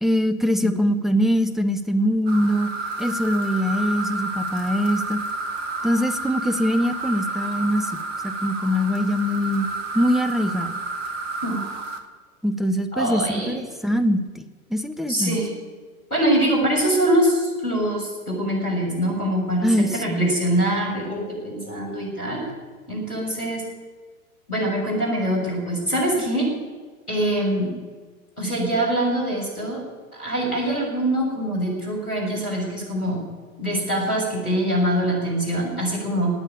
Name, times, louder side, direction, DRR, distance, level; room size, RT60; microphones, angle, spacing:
voice 1, 0.0-2.7 3.0-5.2 5.8-9.7 9.9-10.8 12.4-14.4 14.7-15.4 19.6-20.3, equal, ahead, 9 dB, 0.5 m, -23 dB
sound 1, 2.3-12.0, right 2 dB, 55° right, 1.8 m, -30 dB
voice 2, 12.9-13.5 15.1-15.5 16.1-22.4 22.9-23.6 24.5-26.5 27.1-27.7 28.4-29.8 30.2-33.2 33.6-36.3, right 1 dB, 90° left, -2 dB, 6.7 m, -23 dB
18.0 x 7.4 x 9.6 m, 1.4 s
figure-of-eight pair, 100°, 43 cm